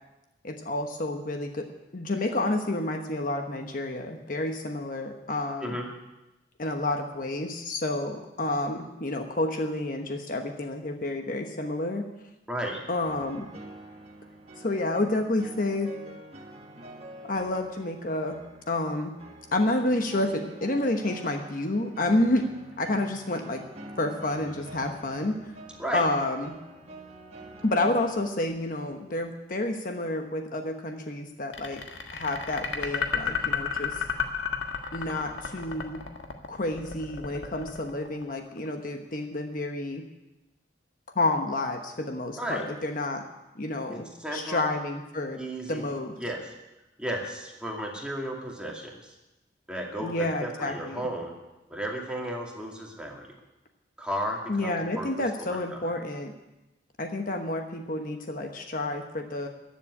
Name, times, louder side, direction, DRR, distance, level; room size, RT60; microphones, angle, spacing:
voice 1, 0.4-1.6 1.9-5.8 6.6-12.0 12.9-13.5 14.6-15.9 17.2-18.4 18.7-19.1 19.5-22.5 22.8-23.6 24.0-25.4 25.9-26.5 27.6-31.8 32.1-34.0 34.9-36.0 36.5-40.0 41.1-43.2 43.5-45.4 45.7-46.2 50.0-51.0 54.5-56.3 57.0-59.5, left 2 dB, 45° left, 5 dB, 1.1 m, -29 dB
voice 2, 12.5-12.8 25.8-26.1 42.4-42.7 43.9-44.7 45.3-45.8 46.2-46.5 47.0-49.1 49.7-51.4 51.7-53.3 54.0-55.1 55.4-55.9, right 1 dB, 5° right, -1 dB, 2.3 m, -34 dB
sound 1, 13.0-28.1, right 1 dB, 35° right, 1.4 m, -47 dB
sound 2, 31.5-38.7, left 7 dB, 85° left, 1.6 m, -32 dB
14.5 x 7.6 x 9.7 m, 1.0 s
head